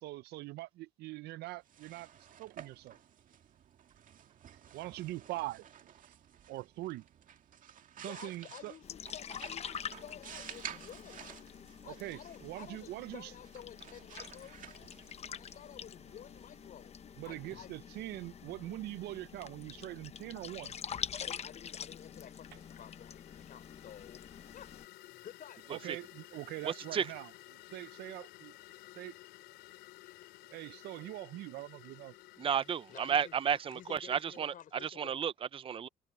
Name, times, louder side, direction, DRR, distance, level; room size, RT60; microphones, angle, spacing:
voice 1, 0.0-2.1 2.4-3.0 4.7-5.6 6.1-6.2 6.5-7.1 8.0-8.7 11.8-13.3 17.2-20.8 25.7-27.3 27.7-28.6 29.0-29.1 30.5-32.1, right 17 dB, 75° right, 0.5 m, -43 dB
sound 1, 1.5-17.2, right 9 dB, 50° right, 2.0 m, -52 dB
voice 2, 8.0-11.4 11.8-14.9 15.2-16.9 17.2-17.7 21.2-25.6 30.0-30.4 31.3-31.4 32.9-35.2, left 10 dB, 55° left, 4.5 m, -52 dB
sound 2, 8.8-24.9, left 8 dB, 40° left, 0.9 m, -46 dB
sound 3, 21.3-34.5, left 17 dB, 85° left, 3.9 m, -55 dB
voice 3, 26.6-27.1 32.4-34.5 34.8-35.9, right 8 dB, 30° right, 0.6 m, -33 dB
cardioid pair, 110°, 17 cm